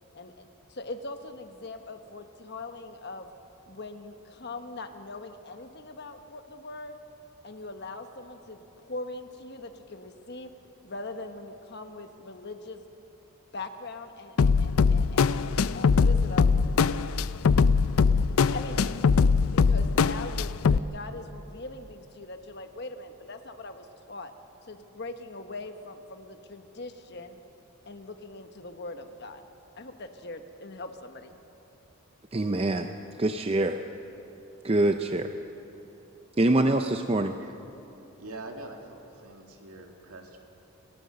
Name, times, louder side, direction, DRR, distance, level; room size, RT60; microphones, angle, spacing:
voice 1, 0.1-3.3 3.7-7.0 7.4-10.5 10.8-12.8 13.5-16.6 18.4-19.0 19.5-24.3 24.7-27.4 27.8-29.4 29.8-31.4, left 2 dB, 50° left, 7 dB, 1.2 m, -41 dB
sound 1, 14.4-20.8, left 5 dB, 75° left, 0.4 m, -22 dB
voice 2, 32.3-32.9 33.2-33.8 34.6-35.3 36.4-37.4, right 2 dB, 25° right, 7 dB, 0.5 m, -24 dB
voice 3, 38.2-38.8 39.2-40.4, right 2 dB, 80° right, 2 dB, 2.3 m, -43 dB
29.5 x 13.5 x 6.6 m, 3.0 s
head